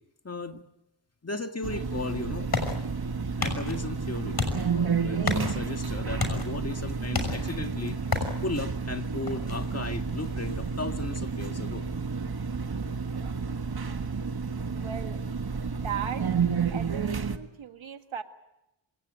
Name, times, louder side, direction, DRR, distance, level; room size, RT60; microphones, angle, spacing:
voice 1, 0.2-0.6 1.2-2.5 3.4-8.0 8.4-11.9, left 3 dB, 30° left, 6 dB, 2.0 m, -36 dB
sound 1, 1.6-17.4, right 5 dB, 50° right, 1.7 m, -31 dB
sound 2, 1.8-13.3, left 3 dB, 50° left, 6.2 m, -36 dB
voice 2, 14.7-15.2 15.5-16.2 16.7-18.2, right 8 dB, 75° right, 7 dB, 1.8 m, -37 dB
26.5 x 17.5 x 9.2 m, 0.91 s
cardioid pair, 70°, 47 cm